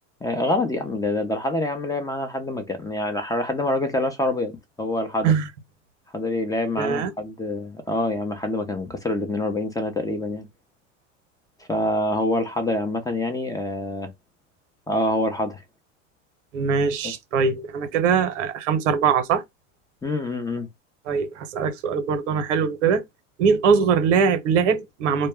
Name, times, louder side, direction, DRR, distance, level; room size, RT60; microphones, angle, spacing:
voice 1, 0.2-5.3 6.1-10.5 11.7-14.1 14.9-15.6 17.0-17.1 20.0-20.7, left 1 dB, 10° left, 0.5 m, -26 dB
voice 2, 6.8-7.1 16.5-19.4 21.1-23.0 23.4-25.3, right 6 dB, 85° right, 0.8 m, -22 dB
2.1 x 2.1 x 3.4 m
hypercardioid pair, 100°, 36 cm